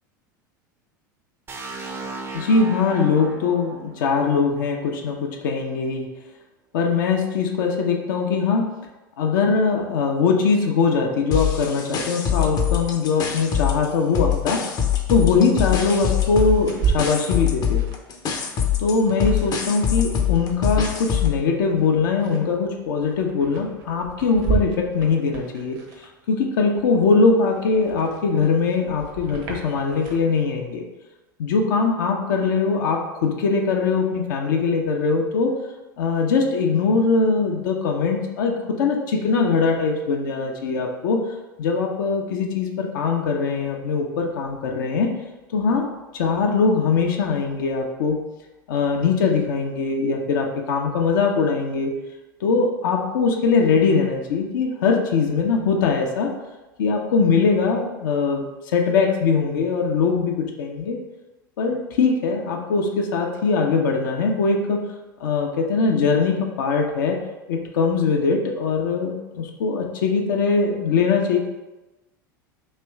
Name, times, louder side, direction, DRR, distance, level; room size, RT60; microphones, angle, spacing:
sound 1, 1.5-5.3, right 3 dB, 20° right, 0.6 m, -37 dB
voice 1, 2.3-6.1 6.7-8.6 9.2-14.6 15.1-17.8 18.8-25.8 26.3-30.8 31.4-35.6 36.0-41.2 41.6-45.1 45.5-45.9 46.1-48.2 48.7-51.9 52.4-56.3 56.8-61.0 61.6-64.8 65.2-67.2 67.5-71.4, left 4 dB, 70° left, 1 dB, 0.7 m, -21 dB
sound 2, 11.3-13.9 14.1-21.4, left 9 dB, 35° left, 0.6 m, -23 dB
sound 3, 14.1-14.2 14.6-26.4 26.8-30.2, right 6 dB, 50° right, 0.9 m, -33 dB
3.3 x 3.0 x 4.5 m, 1.1 s
hypercardioid pair, 85°, 11 cm